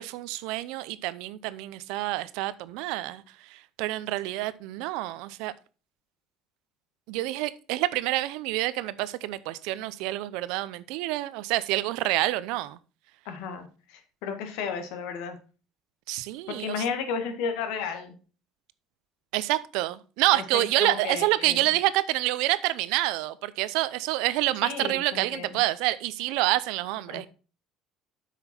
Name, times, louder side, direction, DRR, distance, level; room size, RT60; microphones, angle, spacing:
voice 1, 0.0-3.2 3.5-5.5 7.1-12.8 16.1-16.8 19.3-27.3, right 17 dB, 75° right, 0.6 m, -27 dB
voice 2, 13.3-13.7 14.2-15.4 16.5-18.1 20.3-21.6 24.6-25.5 27.1-27.3, left 6 dB, 75° left, 1.7 m, -33 dB
8.1 x 5.9 x 4.4 m
cardioid pair, 180°, 0 cm